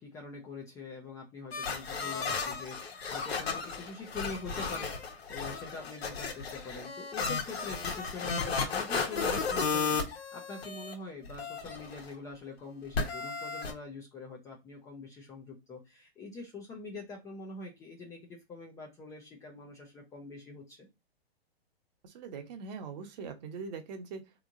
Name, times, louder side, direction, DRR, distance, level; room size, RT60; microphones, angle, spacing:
voice 1, 0.0-20.9, left 3 dB, 10° left, 0 dB, 0.4 m, -44 dB
sound 1, 1.5-10.9 11.2-12.1 12.9-13.7, left 5 dB, 75° left, 1.3 m, -34 dB
voice 2, 22.0-24.4, right 5 dB, 45° right, 6 dB, 0.9 m, -42 dB
3.4 x 3.0 x 2.5 m, 0.24 s
hypercardioid pair, 135°, 31 cm